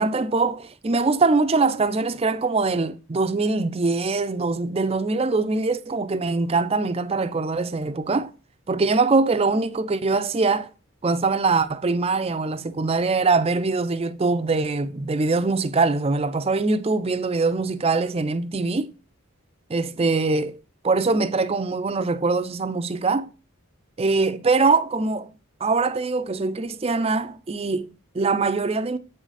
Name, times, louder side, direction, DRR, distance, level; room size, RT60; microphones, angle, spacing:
voice 1, 0.0-8.3 8.7-10.7 11.0-18.9 19.7-20.6 20.8-23.3 24.0-25.3 25.6-29.0, right 3 dB, 25° right, 0.4 m, -23 dB
8.3 x 4.0 x 4.8 m
head